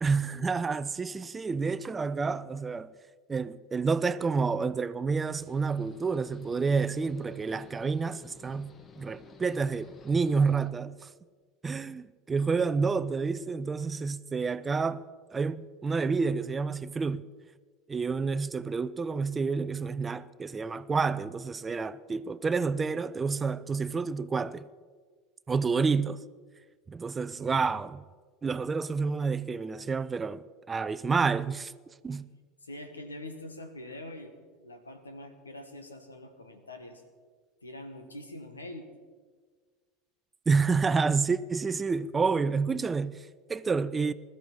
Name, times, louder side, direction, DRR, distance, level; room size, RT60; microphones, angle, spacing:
voice 1, 0.0-2.9 3.3-11.1 11.6-15.0 15.3-17.2 17.9-24.7 25.5-26.2 26.9-28.0 28.4-31.7 32.0-32.3 40.5-44.1, right 4 dB, 20° right, 0.5 m, -29 dB
sound 1, 5.2-10.7, left 4 dB, 30° left, 1.7 m, -53 dB
voice 2, 32.6-34.3 34.6-37.0 37.6-38.9, left 1 dB, 80° left, 1.6 m, -44 dB
21.0 x 13.5 x 4.1 m
figure-of-eight pair, 75°, 0 cm